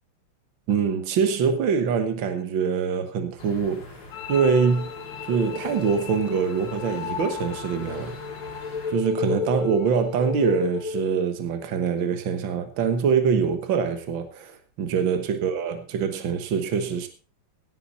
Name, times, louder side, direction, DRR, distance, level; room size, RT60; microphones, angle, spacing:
voice 1, 0.7-4.0 4.3-4.9 5.2-8.2 8.9-17.1, right 6 dB, 65° right, 2.0 m, -24 dB
sound 1, 3.4-8.9, left 3 dB, 50° left, 2.6 m, -43 dB
sound 2, 4.1-11.1, left 6 dB, 70° left, 2.4 m, -32 dB
17.0 x 8.8 x 4.1 m
omnidirectional pair, 2.4 m